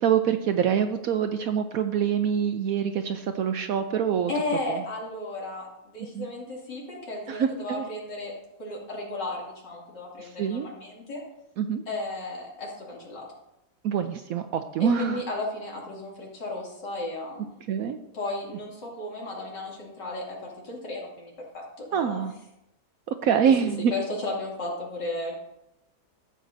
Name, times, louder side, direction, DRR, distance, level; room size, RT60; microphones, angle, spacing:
voice 1, 0.0-4.3 4.7-4.8 6.0-6.3 7.3-7.9 10.2-10.7 11.6-11.8 13.8-15.2 17.7-18.0 21.9-22.3 23.1-23.9, right 8 dB, 70° right, 8 dB, 0.8 m, -25 dB
voice 2, 4.3-8.3 8.6-11.2 11.9-13.3 14.8-17.5 18.1-22.3 23.4-23.5 23.9-25.4, left 2 dB, 80° left, -4 dB, 3.2 m, -34 dB
13.5 x 7.8 x 2.6 m, 0.84 s
omnidirectional pair, 1.9 m